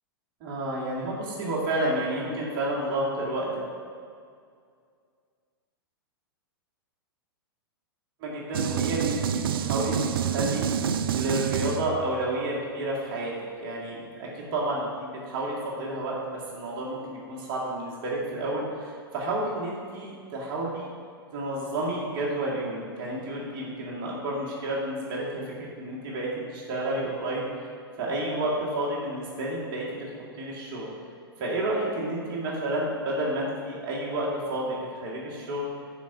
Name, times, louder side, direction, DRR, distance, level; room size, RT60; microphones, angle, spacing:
voice 1, 0.4-3.5 8.2-10.6 11.1-13.3 13.6-20.9 21.3-27.4 28.0-30.1 30.4-30.9 31.4-34.8 35.0-35.7, right 1 dB, 40° right, -5 dB, 2.0 m, -30 dB
sound 1, 8.5-12.2, right 8 dB, 65° right, 0.4 m, -27 dB
7.1 x 5.1 x 5.8 m, 2.2 s
figure-of-eight pair, 105°, 13 cm